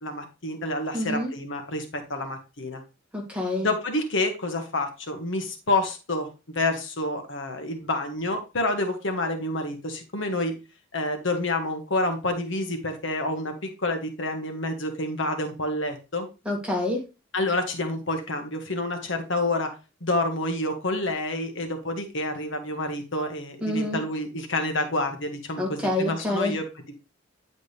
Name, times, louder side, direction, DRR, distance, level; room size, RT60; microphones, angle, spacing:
voice 1, 0.0-2.8 3.6-10.5 10.9-16.3 17.3-26.9, left 2 dB, 65° left, 5 dB, 1.4 m, -28 dB
voice 2, 0.9-1.3 3.1-3.7 16.5-17.0 23.6-24.0 25.6-26.6, left 1 dB, 5° right, -1 dB, 2.2 m, -27 dB
9.7 x 5.0 x 3.4 m, 0.29 s
head